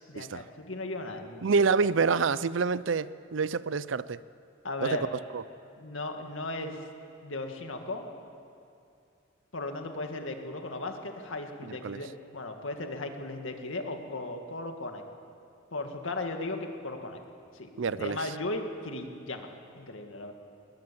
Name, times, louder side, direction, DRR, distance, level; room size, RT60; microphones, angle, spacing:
voice 1, 0.1-1.7 4.6-5.1 5.8-6.8 7.2-8.1 9.5-15.0 15.7-17.2 17.5-17.7 18.0-20.3, left 2 dB, 85° left, 4 dB, 2.1 m, -36 dB
voice 2, 1.4-4.2 4.8-5.0 5.3-5.4 11.8-12.0 17.8-18.2, right 5 dB, 75° right, 18 dB, 0.5 m, -27 dB
21.0 x 20.0 x 7.1 m, 2.5 s
head